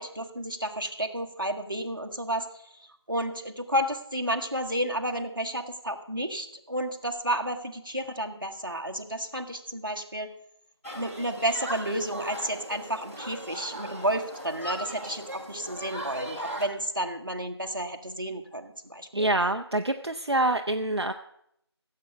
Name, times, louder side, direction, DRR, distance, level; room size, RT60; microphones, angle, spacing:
voice 1, 0.0-2.5 3.1-10.3 10.9-19.3, right 1 dB, 50° right, 4 dB, 1.3 m, -31 dB
Human group actions, 10.8-16.7, equal, 30° right, 1.8 m, -38 dB
voice 2, 19.1-21.1, right 2 dB, 70° right, 6 dB, 0.6 m, -26 dB
15.0 x 7.7 x 5.8 m, 0.75 s
figure-of-eight pair, 175°, 14 cm